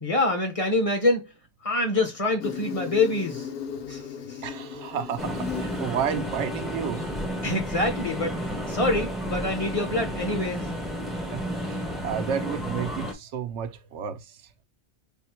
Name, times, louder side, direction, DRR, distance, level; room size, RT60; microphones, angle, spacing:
voice 1, 0.0-1.3 1.6-3.5 3.9-4.4 7.4-10.7, left 2 dB, 35° left, 0.8 m, -26 dB
Insect, 2.4-7.4, left 8 dB, 65° left, 0.8 m, -37 dB
voice 2, 4.4-7.2 11.2-14.5, right 8 dB, 85° right, 0.9 m, -32 dB
sound 1, 5.2-13.1, equal, ahead, 0.6 m, -32 dB
3.5 x 2.1 x 4.3 m
omnidirectional pair, 1.1 m